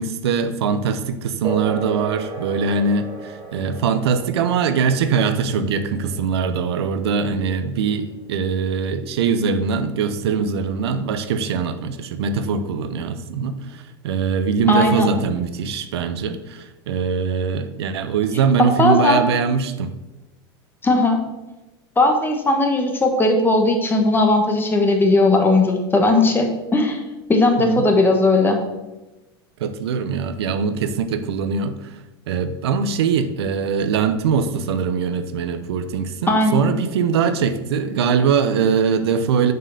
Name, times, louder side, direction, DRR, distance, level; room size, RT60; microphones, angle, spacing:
voice 1, 0.0-19.9 27.6-27.8 29.6-31.9 32.3-39.5, right 6 dB, 85° right, 10 dB, 0.7 m, -22 dB
sound 1, 1.4-9.4, right 3 dB, 30° right, 2.0 m, -35 dB
voice 2, 14.7-15.1 18.6-19.2 20.8-21.2 22.0-27.0 27.3-28.6 36.3-36.7, left 2 dB, 15° left, 3 dB, 1.5 m, -17 dB
6.5 x 4.6 x 6.5 m, 1.0 s
supercardioid pair, 110°, 13 cm